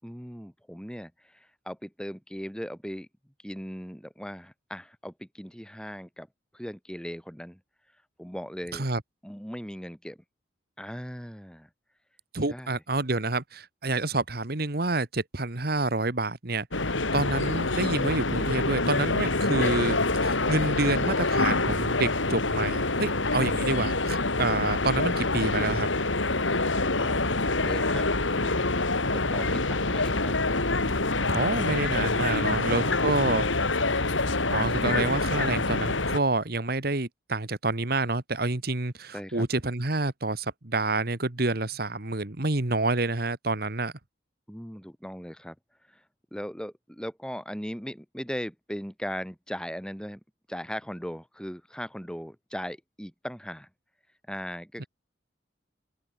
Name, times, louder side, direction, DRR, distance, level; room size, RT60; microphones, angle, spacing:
voice 1, 0.0-3.1 3.4-6.3 6.5-7.6 8.2-8.9 9.2-10.2 10.8-11.7 12.5-12.8 27.0-27.2 27.6-28.6 29.1-30.4 30.8-31.3 32.4-33.5 39.1-39.5 44.5-45.6 45.9-46.0 46.3-50.2 50.5-53.7 54.3-54.9, equal, 5° left, 7.4 m, -38 dB
voice 2, 12.3-16.7 17.1-25.9 31.3-33.5 34.5-43.9, right 2 dB, 50° right, 1.6 m, -28 dB
sound 1, 16.7-36.2, left 2 dB, 85° left, 3.7 m, -26 dB
open air
head